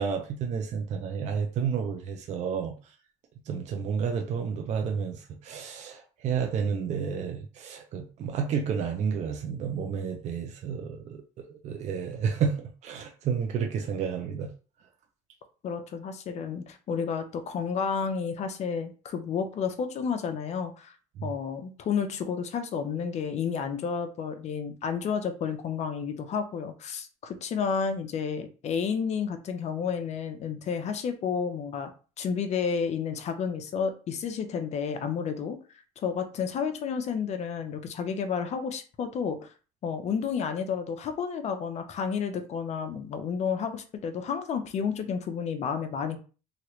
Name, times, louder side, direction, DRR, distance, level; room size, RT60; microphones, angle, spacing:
voice 1, 0.0-2.7 3.5-14.5 21.2-21.3, right 6 dB, 45° right, 0.5 m, -31 dB
voice 2, 15.6-20.9 21.2-31.9 32.2-35.6 36.0-39.5 39.8-46.2, left 6 dB, 40° left, 0.6 m, -31 dB
3.1 x 2.4 x 3.0 m
cardioid pair, 120°, 17 cm